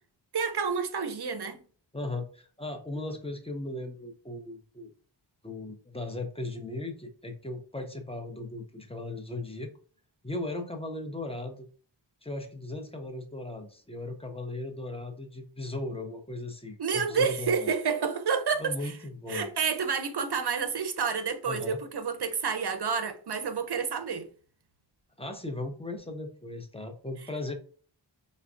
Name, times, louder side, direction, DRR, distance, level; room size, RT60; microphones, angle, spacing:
voice 1, 0.3-1.6 16.8-18.9 19.3-24.3, right 6 dB, 60° right, 0.6 m, -29 dB
voice 2, 1.9-4.9 5.4-9.7 10.2-11.7 12.2-17.7 18.6-19.5 21.4-21.8 25.2-27.5, left 2 dB, 15° left, 0.6 m, -37 dB
4.5 x 2.1 x 2.5 m
wide cardioid pair, 65°, 45 cm